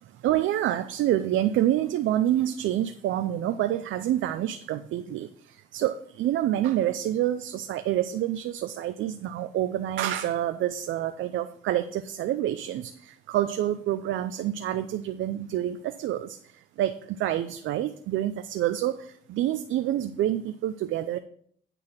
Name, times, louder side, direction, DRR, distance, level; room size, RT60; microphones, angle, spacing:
voice 1, 0.0-21.2, right 12 dB, 75° right, 9 dB, 0.5 m, -27 dB
9.0 x 4.1 x 7.1 m, 0.63 s
cardioid pair, 90°, 20 cm